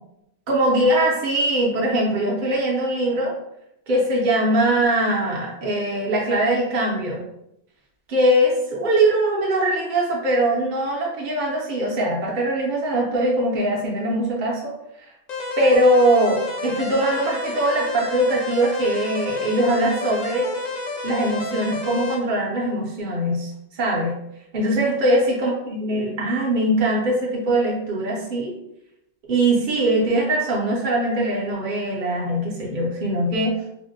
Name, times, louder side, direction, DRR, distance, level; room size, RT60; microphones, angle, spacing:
voice 1, 0.5-3.3 3.9-7.2 8.1-15.1 15.6-20.5 21.0-24.1 24.5-28.5 29.3-33.6, right 1 dB, 50° right, -3 dB, 0.7 m, -21 dB
sound 1, 15.3-22.2, left 3 dB, 55° left, 0.5 m, -30 dB
3.4 x 2.1 x 2.6 m, 0.82 s
omnidirectional pair, 1.2 m